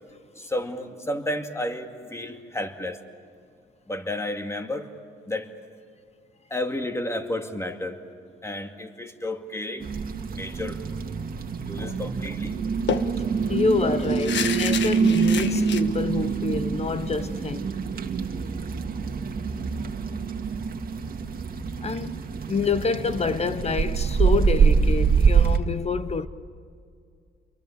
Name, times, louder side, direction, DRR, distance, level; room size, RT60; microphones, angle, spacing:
voice 1, 0.4-3.0 3.9-4.9 5.3-5.5 6.5-8.0 8.4-9.9 10.3-10.8 11.6-12.6, left 1 dB, 15° left, 2.3 m, -31 dB
sound 1, 9.8-25.6, right 6 dB, 50° right, 1.9 m, -25 dB
sound 2, 11.7-12.0 12.3-12.4 12.9-15.8, left 8 dB, 65° left, 1.4 m, -30 dB
voice 2, 13.5-17.8 21.8-22.2 22.5-26.3, left 4 dB, 30° left, 1.0 m, -27 dB
29.5 x 23.0 x 8.6 m
cardioid pair, 90°, 20 cm